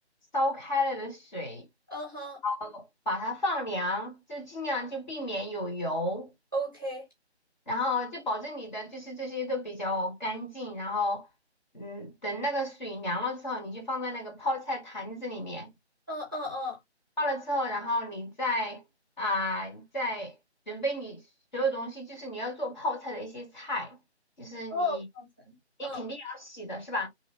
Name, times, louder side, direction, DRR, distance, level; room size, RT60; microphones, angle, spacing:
voice 1, 0.3-1.7 2.4-6.3 7.7-11.3 11.7-15.7 17.2-18.8 19.2-20.3 20.7-21.2 21.5-24.0 24.4-25.0 25.8-27.1, left 1 dB, 40° left, 1.4 m, -32 dB
voice 2, 1.9-2.4 6.5-7.0 16.1-16.8 24.7-26.0, left 1 dB, 20° right, 0.6 m, -34 dB
2.9 x 2.3 x 2.8 m
figure-of-eight pair, 160°, 34 cm